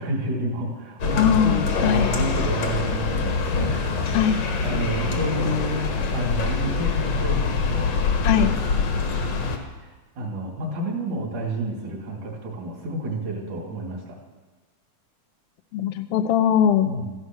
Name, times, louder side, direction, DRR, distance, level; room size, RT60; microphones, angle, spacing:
voice 1, 0.0-4.0 4.3-5.9 6.1-7.9 9.8-9.9 10.2-14.2 16.8-17.1, right 1 dB, 65° right, -1 dB, 4.1 m, -30 dB
sound 1, 1.0-9.6, left 4 dB, 55° left, 2.4 m, -24 dB
voice 2, 1.2-2.1 4.1-4.4 8.2-8.5 15.7-16.9, left 9 dB, 80° left, 8 dB, 1.4 m, -20 dB
14.5 x 11.0 x 6.1 m, 1.2 s
omnidirectional pair, 3.8 m